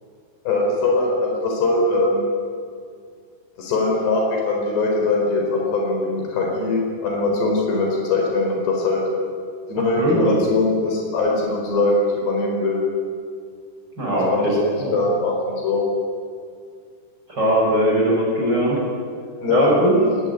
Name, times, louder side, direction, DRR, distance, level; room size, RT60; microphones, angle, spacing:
voice 1, 0.4-2.3 3.6-9.1 9.7-12.8 14.1-15.8 19.4-19.7 19.9-20.1, left 2 dB, 85° left, 0 dB, 6.7 m, -21 dB
voice 2, 9.8-10.3 14.0-14.9 17.3-18.8 19.5-20.0, equal, 25° right, -4 dB, 6.9 m, -20 dB
22.5 x 20.5 x 9.8 m, 2.1 s
omnidirectional pair, 4.7 m